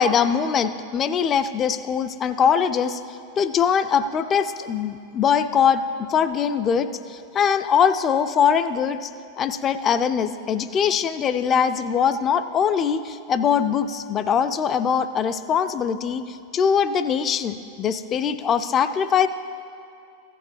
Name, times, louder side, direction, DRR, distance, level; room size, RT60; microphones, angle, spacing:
voice 1, 0.0-9.1 9.4-19.3, left 7 dB, 25° left, 11 dB, 0.4 m, -22 dB
15.0 x 9.6 x 3.2 m, 2.4 s
figure-of-eight pair, 90°, 0 cm